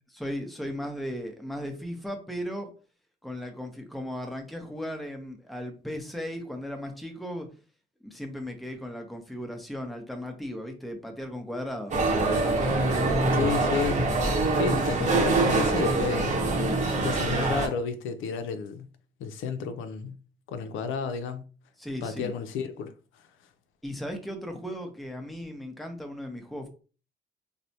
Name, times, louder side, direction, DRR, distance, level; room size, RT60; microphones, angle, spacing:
voice 1, 0.1-2.7 3.2-7.5 8.0-12.0 21.8-22.3 23.8-26.7, equal, ahead, 0.6 m, -36 dB
sound 1, 11.9-17.7, right 2 dB, 35° right, 0.8 m, -24 dB
voice 2, 13.3-14.1 14.5-16.4 17.0-18.9 19.2-20.2 20.5-21.4 22.0-22.9, left 5 dB, 80° left, 0.4 m, -31 dB
3.1 x 2.0 x 2.7 m
cardioid pair, 90°, 20 cm